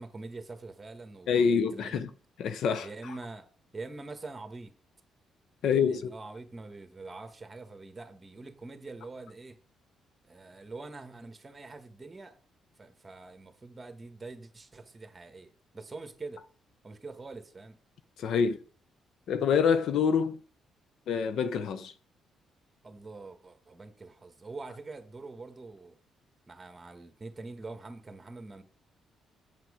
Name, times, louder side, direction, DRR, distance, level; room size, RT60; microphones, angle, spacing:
voice 1, 0.0-2.1 2.8-4.7 5.6-9.6 10.3-12.4 12.8-16.4 16.8-17.8 22.8-26.0 26.5-28.6, right 3 dB, 25° right, 1.4 m, -44 dB
voice 2, 1.3-2.1 2.4-2.9 5.6-6.1 18.2-18.6 19.3-20.4 21.1-21.9, left 6 dB, 70° left, 0.8 m, -26 dB
7.6 x 7.4 x 5.0 m
cardioid pair, 90°, 0 cm